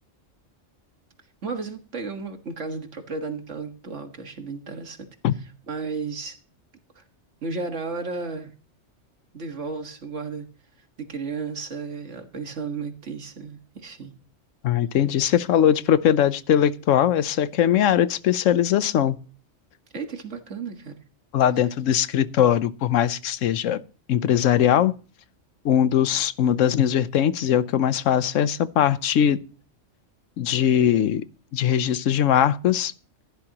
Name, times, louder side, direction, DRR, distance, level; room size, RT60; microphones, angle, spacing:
voice 1, 1.4-5.1 5.7-6.4 7.0-7.1 7.4-8.5 9.3-10.5 11.0-14.1 19.9-21.0, right 4 dB, 70° right, 2.0 m, -33 dB
voice 2, 14.6-19.2 21.3-23.8 24.1-24.9 25.6-29.4 30.4-31.2 31.5-32.9, left 10 dB, 85° left, 1.1 m, -20 dB
15.5 x 11.5 x 2.9 m
omnidirectional pair, 1.3 m